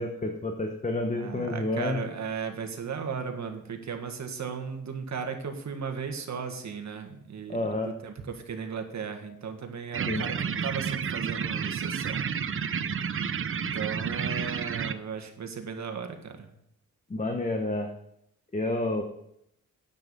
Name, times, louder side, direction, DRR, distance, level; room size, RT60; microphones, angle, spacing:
voice 1, 0.0-2.0 7.5-7.9 10.1-10.3 17.1-17.9 18.5-19.0, left 2 dB, 25° left, 4 dB, 1.2 m, -29 dB
voice 2, 1.2-7.7 8.0-12.3 13.5-16.5, right 6 dB, 60° right, 6 dB, 1.7 m, -36 dB
sound 1, 9.9-14.9, right 7 dB, 40° right, 0.6 m, -31 dB
9.6 x 8.2 x 5.4 m, 0.77 s
cardioid pair, 85°, 31 cm